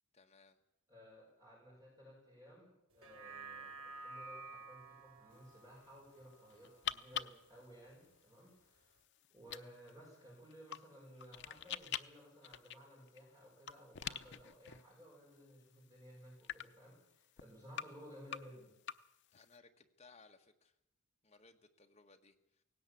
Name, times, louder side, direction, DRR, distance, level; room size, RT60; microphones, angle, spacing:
voice 1, 0.1-0.6 19.3-20.8 21.2-22.6, left 4 dB, 30° left, 4 dB, 1.5 m, -63 dB
voice 2, 0.9-8.9 9.3-18.7, equal, 15° right, -3 dB, 6.2 m, -57 dB
sound 1, 2.9-7.5 7.9-8.0, right 3 dB, 75° right, 4.3 m, -52 dB
sound 2, 5.3-19.6, left 10 dB, 50° left, 0.7 m, -49 dB
18.0 x 17.0 x 8.5 m, 0.81 s
head